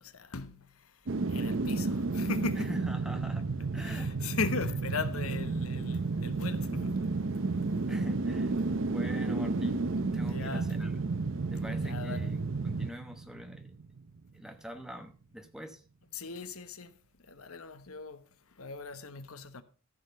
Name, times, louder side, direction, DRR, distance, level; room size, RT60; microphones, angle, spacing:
voice 1, 0.0-2.8 3.8-7.7 10.3-10.9 11.8-12.3 16.1-19.6, left 4 dB, 80° left, 1.1 m, -39 dB
sound 1, 1.1-14.1 14.5-14.6, right 3 dB, 60° right, 0.6 m, -32 dB
voice 2, 2.6-3.5 3.7-4.1 7.9-11.0 11.5-12.4 12.6-13.7 14.3-15.8, equal, 5° right, 1.0 m, -44 dB
13.5 x 6.6 x 5.3 m
head